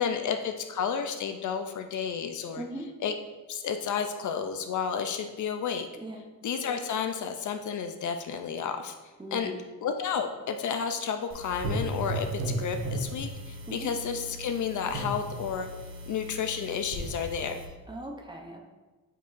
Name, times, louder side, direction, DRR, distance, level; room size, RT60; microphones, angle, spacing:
voice 1, 0.0-2.6 3.0-3.1 3.5-5.9 6.4-8.9 9.3-9.5 9.8-15.7 16.1-17.6, left 7 dB, 55° left, 6 dB, 0.4 m, -31 dB
voice 2, 2.6-2.9 6.0-6.3 9.2-9.6 13.7-13.9 17.9-18.6, right 1 dB, 10° right, 1 dB, 0.6 m, -39 dB
sound 1, 11.3-17.6, right 1 dB, 55° right, 1.5 m, -36 dB
8.0 x 4.7 x 2.5 m, 1.2 s
cardioid pair, 150°, 38 cm